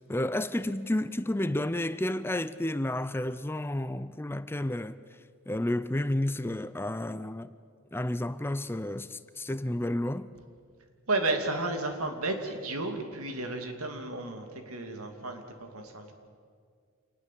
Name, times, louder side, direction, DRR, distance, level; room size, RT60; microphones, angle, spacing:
voice 1, 0.0-5.0 5.5-7.5 7.9-10.3, left 1 dB, 10° left, 0.5 m, -31 dB
voice 2, 11.1-16.1, right 2 dB, 90° right, 2.8 m, -32 dB
26.5 x 20.0 x 7.6 m
head